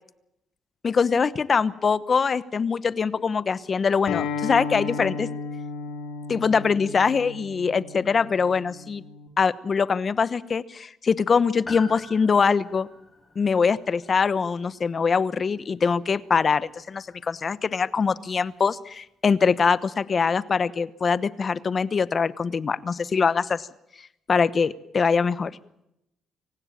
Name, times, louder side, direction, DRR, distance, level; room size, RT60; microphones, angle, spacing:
voice 1, 0.8-5.3 6.3-9.0 9.4-12.9 13.4-23.7 24.3-25.6, left 5 dB, 40° left, 17 dB, 1.0 m, -23 dB
Acoustic guitar, 4.1-9.3, left 5 dB, 85° left, 3.0 m, -34 dB
Piano, 11.6-16.3 16.5-16.6, left 3 dB, 25° left, 5.0 m, -45 dB
25.5 x 16.0 x 8.9 m, 0.85 s
cardioid pair, 90°, 0 cm